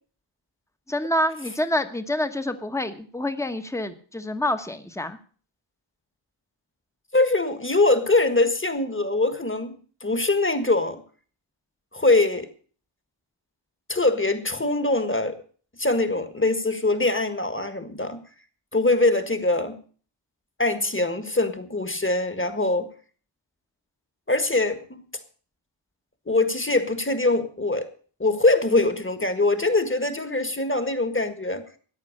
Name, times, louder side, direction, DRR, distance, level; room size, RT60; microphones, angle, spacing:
voice 1, 0.9-5.2, left 1 dB, 5° left, 1.3 m, -27 dB
voice 2, 7.1-11.0 11.9-12.5 13.9-15.4 15.8-18.2 18.7-19.8 20.6-22.9 24.3-25.0 26.3-27.9 28.2-31.6, left 2 dB, 25° left, 1.8 m, -23 dB
14.5 x 9.6 x 6.6 m
wide cardioid pair, 65°, 49 cm